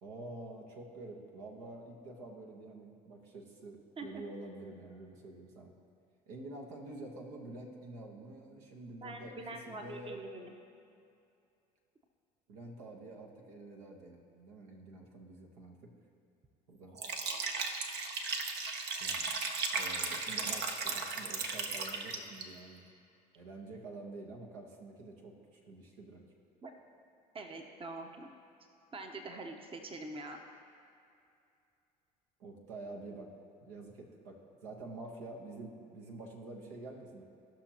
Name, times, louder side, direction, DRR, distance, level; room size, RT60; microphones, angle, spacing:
voice 1, 0.0-5.7 6.3-10.2 12.5-15.9 16.7-17.0 19.0-19.3 19.7-22.8 23.3-26.2 32.4-33.3 33.6-37.2, right 2 dB, 75° right, 1 dB, 1.2 m, -48 dB
voice 2, 9.0-10.5 26.6-26.7 27.3-28.3 28.9-30.4, right 2 dB, 25° right, 4 dB, 0.9 m, -44 dB
Liquid, 16.9-22.4, right 4 dB, 55° right, 0.9 m, -36 dB
16.5 x 5.9 x 2.9 m, 2.5 s
hypercardioid pair, 60°, 20 cm